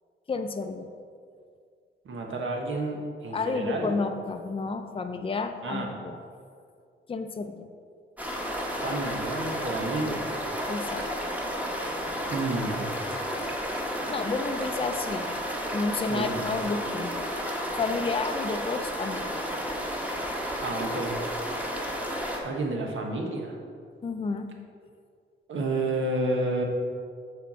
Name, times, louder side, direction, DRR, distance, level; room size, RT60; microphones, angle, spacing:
voice 1, 0.3-0.9 3.3-6.2 7.1-7.7 10.7-11.0 14.1-15.3 15.7-17.3 17.8-19.4 24.0-24.5, left 4 dB, 25° left, 6 dB, 0.5 m, -31 dB
voice 2, 2.0-3.9 5.6-5.9 8.7-10.3 12.3-12.9 16.1-16.4 20.6-21.2 22.4-23.6 25.5-26.6, right 2 dB, 70° right, 1 dB, 1.3 m, -30 dB
sound 1, 8.2-22.4, equal, 5° right, 1.2 m, -32 dB
6.7 x 4.5 x 6.3 m, 2.2 s
cardioid pair, 85°, 21 cm